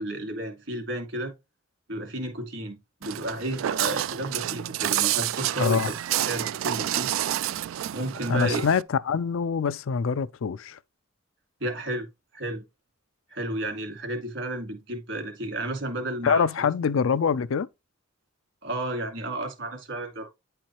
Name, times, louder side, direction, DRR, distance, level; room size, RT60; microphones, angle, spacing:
voice 1, 0.0-1.3 1.9-7.1 7.9-8.6 11.6-12.1 12.3-12.6 13.3-16.7 18.6-20.3, right 1 dB, 60° right, 2.3 m, -32 dB
Walk footsteps, 3.0-8.8, right 13 dB, 80° right, 0.3 m, -29 dB
voice 2, 5.6-5.9 8.3-10.8 16.2-17.7, left 6 dB, 80° left, 0.4 m, -24 dB
9.7 x 4.5 x 3.0 m
head